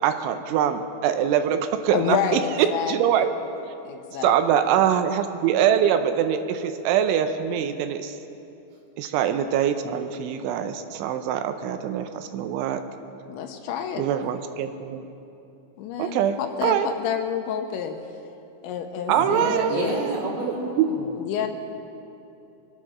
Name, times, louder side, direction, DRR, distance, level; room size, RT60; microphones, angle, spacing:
voice 1, 0.0-3.3 4.2-8.2 9.0-12.8 14.0-15.1 16.0-16.9 19.1-20.1, right 9 dB, 80° right, 8 dB, 3.1 m, -23 dB
voice 2, 1.9-3.3 3.8-4.6 13.3-14.0 15.8-18.0 18.6-20.0 21.2-21.5, left 8 dB, 85° left, 5 dB, 3.0 m, -29 dB
voice 3, 19.2-21.5, right 2 dB, 60° right, -3 dB, 3.8 m, -30 dB
23.0 x 9.9 x 6.1 m, 2.8 s
omnidirectional pair, 5.5 m